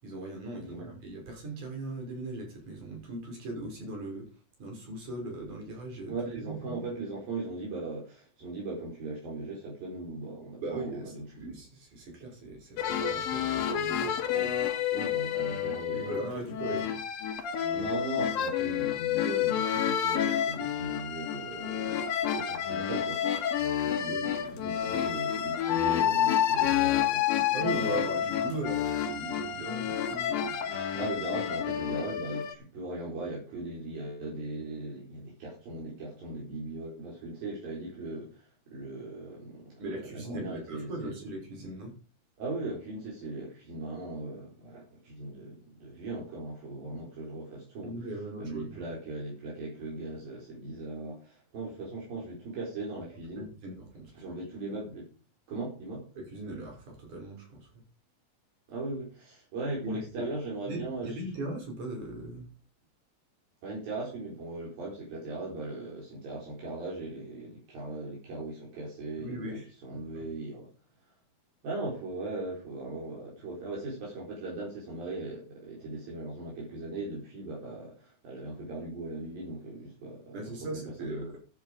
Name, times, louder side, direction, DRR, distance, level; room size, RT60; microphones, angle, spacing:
voice 1, 0.0-4.3 4.6-6.9 10.6-14.1 15.9-17.0 23.9-25.0 27.5-30.6 39.8-41.9 47.8-48.8 53.4-54.1 56.2-57.7 59.8-60.2 60.7-62.5 69.2-69.7 70.1-70.3 80.3-81.4, right 2 dB, 55° right, 1 dB, 7.2 m, -39 dB
voice 2, 6.1-11.5 14.3-14.6 14.9-16.3 16.6-16.7 17.7-22.1 22.3-23.2 24.5-28.0 30.7-39.8 40.1-41.1 42.4-47.9 48.4-53.5 54.1-55.1 55.5-56.1 58.7-61.2 63.6-70.7 71.6-81.3, right 2 dB, 70° right, -4 dB, 6.0 m, -39 dB
sound 1, 12.8-32.6, left 9 dB, 70° left, 3.3 m, -29 dB
12.5 x 9.3 x 5.1 m, 0.35 s
omnidirectional pair, 4.3 m